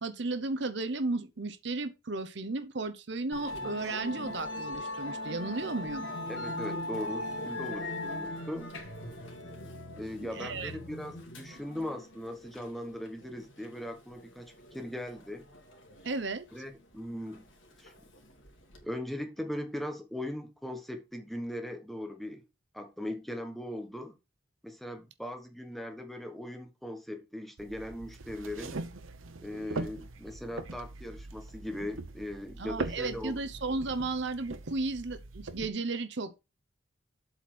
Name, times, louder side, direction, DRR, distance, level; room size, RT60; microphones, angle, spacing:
voice 1, 0.0-6.1 10.3-10.7 16.0-16.4 32.6-36.4, right 3 dB, 60° right, 0.8 m, -34 dB
Musical instrument, 3.3-18.8, left 1 dB, 70° left, 2.3 m, -40 dB
voice 2, 6.3-8.7 9.9-15.5 16.5-17.5 17.8-17.9 18.8-22.5 22.7-24.1 24.6-28.8 29.4-33.4, left 1 dB, ahead, 1.1 m, -39 dB
sound 1, 27.6-35.7, right 3 dB, 90° right, 1.0 m, -41 dB
8.0 x 4.2 x 6.1 m
head